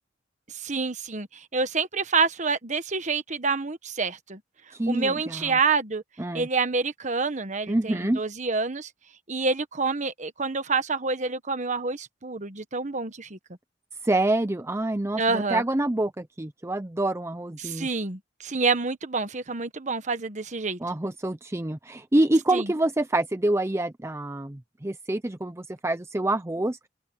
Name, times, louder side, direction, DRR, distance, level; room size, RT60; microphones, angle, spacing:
voice 1, 0.5-4.4 4.9-6.0 6.3-8.9 9.3-13.4 15.1-15.6 17.6-20.8 22.5-22.7, right 4 dB, 40° right, 1.3 m, -27 dB
voice 2, 4.7-5.6 6.2-6.5 7.7-8.2 14.0-17.9 20.8-26.8, right 1 dB, 15° right, 0.6 m, -26 dB
head